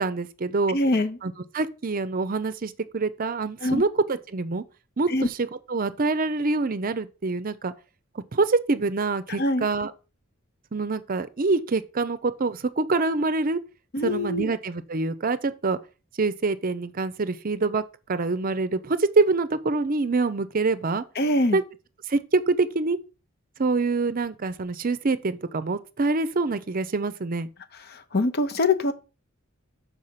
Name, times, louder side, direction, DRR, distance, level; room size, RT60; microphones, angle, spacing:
voice 1, 0.0-0.8 1.2-4.6 5.0-5.4 5.7-7.7 8.3-9.9 10.7-13.6 14.0-15.8 16.2-17.8 18.1-21.0 21.5-21.6 22.1-23.0 23.6-27.5, right 3 dB, 45° right, 0.6 m, -25 dB
voice 2, 0.7-1.2 3.6-3.8 5.1-5.3 9.4-9.7 13.9-14.5 21.2-21.6 27.9-28.9, left 2 dB, 50° left, 0.8 m, -24 dB
6.4 x 4.9 x 5.6 m
head